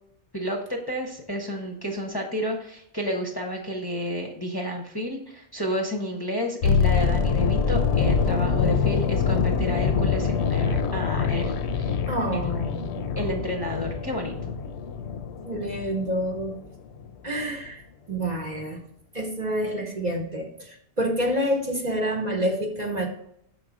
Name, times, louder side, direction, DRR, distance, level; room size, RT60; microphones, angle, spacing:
voice 1, 0.3-12.0 12.3-12.5 13.2-14.5, equal, 20° left, 0 dB, 0.8 m, -31 dB
sound 1, 6.6-16.6 16.9-17.1, left 6 dB, 70° left, 0.8 m, -25 dB
voice 2, 12.1-13.0 15.4-16.6 17.2-17.8 18.1-18.8 19.1-23.1, equal, 40° right, 1 dB, 0.9 m, -28 dB
6.4 x 4.0 x 4.9 m, 0.72 s
omnidirectional pair, 1.2 m